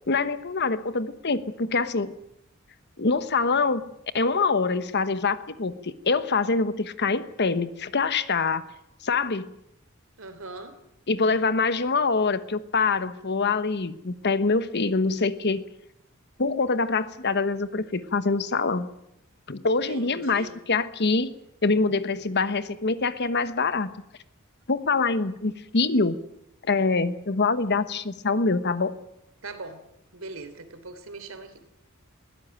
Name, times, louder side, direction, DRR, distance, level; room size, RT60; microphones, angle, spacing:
voice 1, 0.1-2.1 3.0-3.9 4.1-8.6 9.0-9.5 11.1-15.6 16.4-18.9 19.5-21.3 21.6-23.9 24.7-26.2 26.7-29.0, left 4 dB, 55° left, 13 dB, 1.2 m, -25 dB
voice 2, 10.2-10.7 19.6-20.6 29.4-29.8 30.1-31.6, right 3 dB, 75° right, 9 dB, 3.4 m, -40 dB
21.5 x 16.0 x 9.0 m, 0.83 s
head